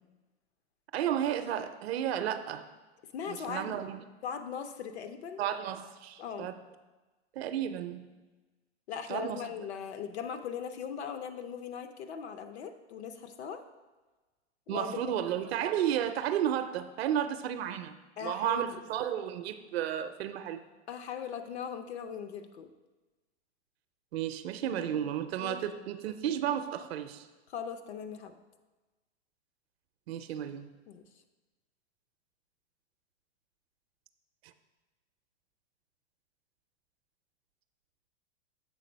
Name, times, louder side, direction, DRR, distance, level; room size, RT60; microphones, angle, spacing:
voice 1, 0.9-2.7 3.3-4.0 5.4-6.5 7.4-8.1 9.1-9.4 14.7-20.6 24.1-27.3 30.1-30.7, right 10 dB, 60° right, 10 dB, 0.6 m, -33 dB
voice 2, 3.1-3.8 4.2-5.4 6.2-6.5 8.9-13.6 14.7-15.1 18.2-18.6 20.9-22.7 25.4-25.6 27.5-28.4 30.9-31.0, left 7 dB, 70° left, 8 dB, 0.8 m, -39 dB
7.5 x 3.8 x 5.2 m, 1.2 s
hypercardioid pair, 130°, 34 cm